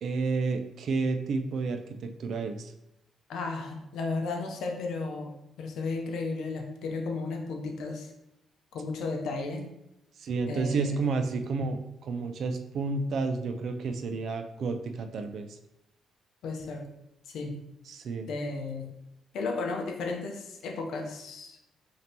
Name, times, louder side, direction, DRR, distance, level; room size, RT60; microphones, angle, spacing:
voice 1, 0.0-2.7 10.2-15.6 17.9-18.3, right 4 dB, 65° right, 7 dB, 0.4 m, -31 dB
voice 2, 3.3-8.1 8.7-9.7 10.5-11.0 16.4-16.9 17.3-17.6 18.3-18.9 19.3-21.6, left 3 dB, 80° left, 3 dB, 0.7 m, -34 dB
5.1 x 2.8 x 2.8 m, 0.86 s
cardioid pair, 90°, 0 cm